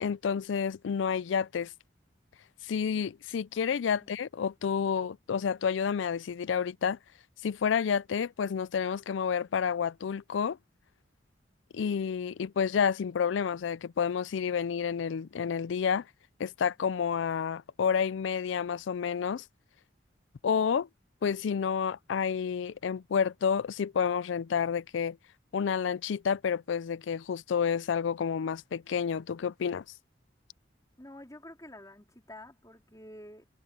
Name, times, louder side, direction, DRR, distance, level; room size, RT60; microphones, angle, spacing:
voice 1, 0.0-1.7 2.6-7.0 7.4-10.6 11.7-16.0 16.4-19.4 20.4-20.9 21.2-25.2 25.5-29.8, left 7 dB, 80° left, 0.4 m, -30 dB
voice 2, 31.0-33.5, left 1 dB, 20° left, 3.5 m, -48 dB
head